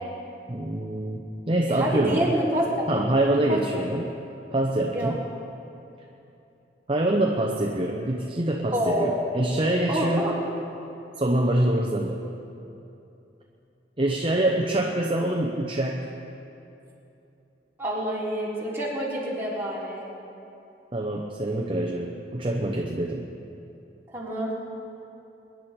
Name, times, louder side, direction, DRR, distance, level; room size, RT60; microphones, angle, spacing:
voice 1, 0.5-2.3 2.9-4.1 4.5-5.2 6.9-10.3 11.2-12.2 14.0-16.1 20.9-23.3, right 1 dB, 30° right, 0 dB, 0.9 m, -25 dB
voice 2, 1.7-2.8 3.2-3.8 4.9-5.1 8.7-9.2 9.9-10.4 17.8-20.0 24.1-24.5, right 1 dB, 15° right, -7 dB, 3.5 m, -27 dB
23.5 x 10.5 x 4.4 m, 2.8 s
head